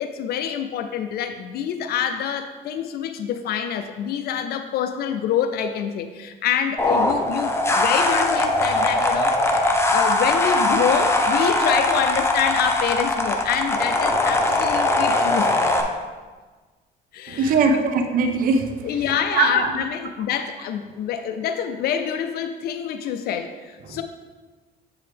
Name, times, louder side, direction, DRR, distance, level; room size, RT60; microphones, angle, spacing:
voice 1, 0.0-15.6 17.1-17.5 18.8-24.0, left 8 dB, 70° left, 8 dB, 0.5 m, -26 dB
sound 1, 6.8-15.8, left 2 dB, 15° left, 0.7 m, -21 dB
voice 2, 17.3-18.9 19.3-19.7 23.9-24.0, right 4 dB, 55° right, 5 dB, 0.7 m, -21 dB
7.7 x 4.8 x 3.4 m, 1.3 s
cardioid pair, 110°, 17 cm